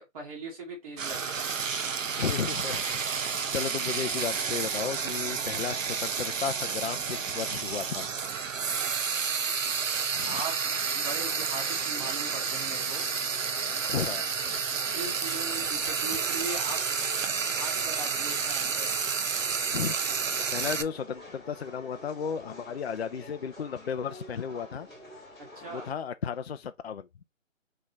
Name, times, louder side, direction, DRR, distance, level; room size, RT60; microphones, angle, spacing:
voice 1, 0.0-1.5 10.3-10.5 10.9-13.0 14.9-16.8 17.6-18.9 25.5-25.9, right 3 dB, 25° right, 1.7 m, -39 dB
Frying (food), 1.0-20.8, right 6 dB, 75° right, 0.8 m, -30 dB
voice 2, 2.2-8.1 10.1-10.4 13.8-14.2 19.7-20.0 20.5-24.9 25.7-27.1, left 7 dB, 55° left, 0.4 m, -34 dB
sound 1, 10.7-25.9, left 1 dB, 10° left, 2.0 m, -48 dB
3.7 x 3.2 x 4.0 m
hypercardioid pair, 165°, 39 cm